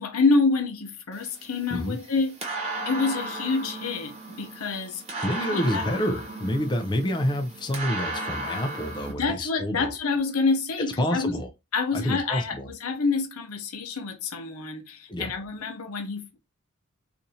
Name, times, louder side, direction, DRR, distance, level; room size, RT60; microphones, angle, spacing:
voice 1, 0.0-2.3 2.9-5.0 5.5-5.8 9.1-11.4 11.7-16.4, left 4 dB, 85° left, 0.8 m, -27 dB
sound 1, 1.1-9.1, right 2 dB, 30° right, 1.0 m, -35 dB
voice 2, 5.2-9.9 11.0-11.5 11.9-12.7 15.1-15.3, equal, 20° left, 0.4 m, -28 dB
2.6 x 2.5 x 4.1 m
head